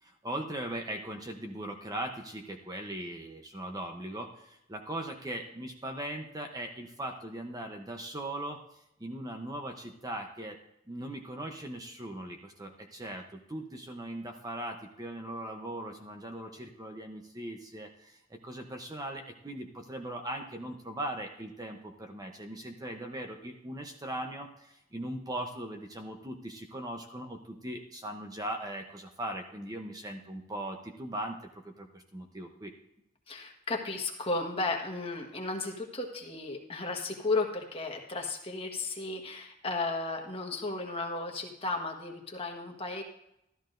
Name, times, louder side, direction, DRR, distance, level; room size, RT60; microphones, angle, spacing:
voice 1, 0.0-8.6 9.0-10.6 10.9-31.4 31.6-32.7, right 1 dB, 20° right, 4 dB, 0.7 m, -39 dB
voice 2, 33.3-43.0, left 3 dB, 30° left, 2 dB, 1.4 m, -34 dB
13.5 x 12.5 x 2.6 m, 0.80 s
head